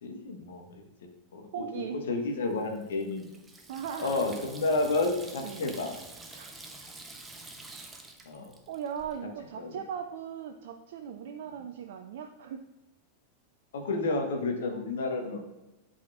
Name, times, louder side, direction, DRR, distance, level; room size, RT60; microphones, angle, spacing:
voice 1, 0.0-0.8 1.3-1.6 2.1-3.3 4.0-5.9 8.3-8.5 9.6-9.7 13.7-15.5, left 3 dB, 60° left, 3 dB, 1.2 m, -30 dB
voice 2, 1.5-2.0 3.7-4.3 5.4-5.7 6.3-6.5 8.7-12.6, right 8 dB, 55° right, 5 dB, 0.4 m, -38 dB
Water tap faucet / Sink (filling or washing), 2.4-9.2, right 2 dB, 10° right, 0.7 m, -48 dB
10.5 x 4.2 x 2.5 m, 1.0 s
figure-of-eight pair, 90°, 0 cm